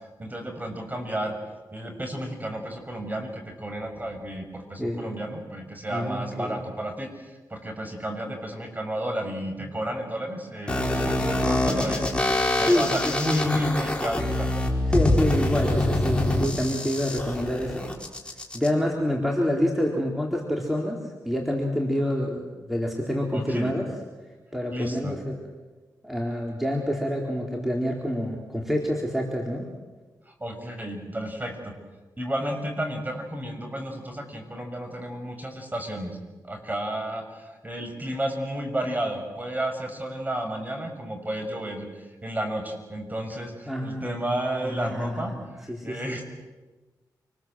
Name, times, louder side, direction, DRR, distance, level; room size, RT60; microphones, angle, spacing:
voice 1, 0.2-1.4 1.7-14.5 23.3-23.7 24.7-25.2 30.3-31.7 32.2-36.2 36.4-41.9 42.2-46.2, right 1 dB, 20° right, 4 dB, 6.4 m, -32 dB
voice 2, 4.8-5.2 5.9-6.6 12.5-12.9 13.3-13.4 14.9-17.9 18.5-21.0 21.2-23.8 24.5-25.4 26.0-29.7 43.7-44.1 44.6-45.4 45.7-46.2, equal, 5° right, 0 dB, 4.2 m, -27 dB
sound 1, 10.7-18.7, left 1 dB, 15° left, 4.9 m, -25 dB
28.5 x 20.5 x 7.7 m, 1.3 s
cardioid pair, 60°, 8 cm